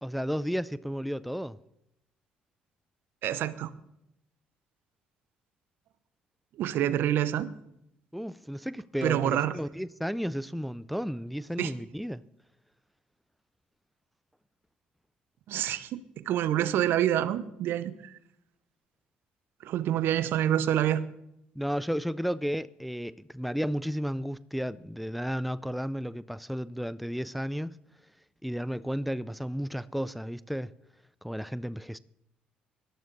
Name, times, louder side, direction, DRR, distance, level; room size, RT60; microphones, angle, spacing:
voice 1, 0.0-1.6 8.1-12.2 21.6-27.8 28.4-30.7 31.2-32.0, equal, ahead, 0.5 m, -33 dB
voice 2, 3.2-3.7 6.6-7.5 9.0-9.6 11.6-11.7 15.5-18.1 19.6-21.0, right 11 dB, 65° right, 0.8 m, -27 dB
18.0 x 12.5 x 4.0 m
hypercardioid pair, 55°, 4 cm